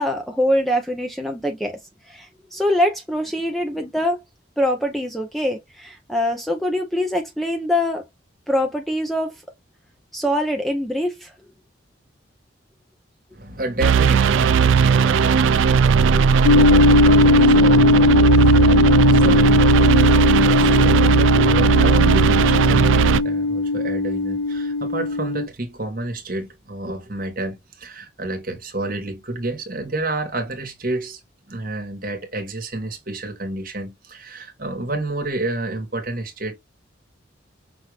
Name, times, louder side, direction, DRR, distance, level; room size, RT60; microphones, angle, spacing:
voice 1, 0.0-1.8 2.0-4.2 4.6-8.0 8.5-9.4 10.1-11.3, left 1 dB, ahead, 0.5 m, -23 dB
voice 2, 13.3-31.2 31.5-36.5, right 2 dB, 45° right, 1.4 m, -30 dB
sound 1, 13.8-23.2, right 6 dB, 75° right, 0.3 m, -17 dB
sound 2, 16.4-25.5, left 3 dB, 75° left, 0.5 m, -18 dB
5.7 x 2.5 x 3.3 m
head